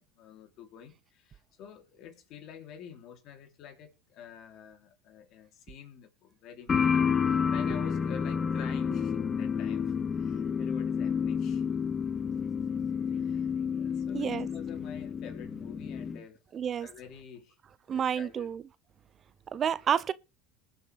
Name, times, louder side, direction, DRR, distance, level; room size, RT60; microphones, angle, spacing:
voice 1, 0.0-11.7 12.9-16.4 16.8-17.6 17.9-18.5, left 8 dB, 50° left, 3.1 m, -49 dB
sound 1, 6.7-16.2, left 6 dB, 25° left, 0.8 m, -30 dB
voice 2, 14.1-14.5 16.5-16.9 17.9-18.6 19.5-20.1, right 8 dB, 35° right, 0.5 m, -29 dB
21.0 x 7.2 x 3.4 m
supercardioid pair, 110°, 0 cm